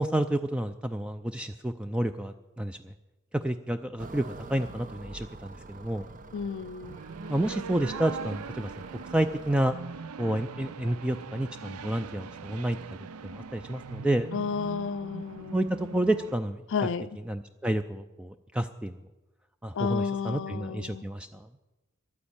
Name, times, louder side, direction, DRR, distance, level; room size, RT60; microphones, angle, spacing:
voice 1, 0.0-2.9 3.3-6.1 7.3-8.7 9.1-9.7 10.2-12.8 13.2-14.3 15.5-16.6 17.3-19.0 19.6-21.5, right 1 dB, 5° right, 9 dB, 0.4 m, -30 dB
sound 1, 4.0-9.7, right 3 dB, 40° right, 0.7 m, -46 dB
voice 2, 6.3-7.0 14.3-15.7 16.7-17.2 19.7-21.1, left 5 dB, 60° left, 11 dB, 0.5 m, -32 dB
sound 2, 6.8-16.4, right 5 dB, 90° right, 0.6 m, -41 dB
11.5 x 9.6 x 8.7 m, 1.0 s
head